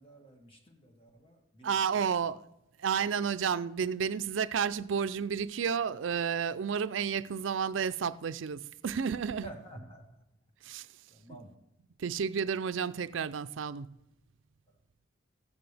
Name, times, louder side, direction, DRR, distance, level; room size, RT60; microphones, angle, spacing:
voice 1, 0.0-2.0 9.4-10.0 11.1-11.5, right 1 dB, 30° left, 1.6 m, -50 dB
voice 2, 1.6-2.4 2.8-9.5 10.6-10.9 11.3-11.4 12.0-14.0, right 7 dB, 80° right, 0.4 m, -31 dB
14.5 x 9.1 x 3.4 m
head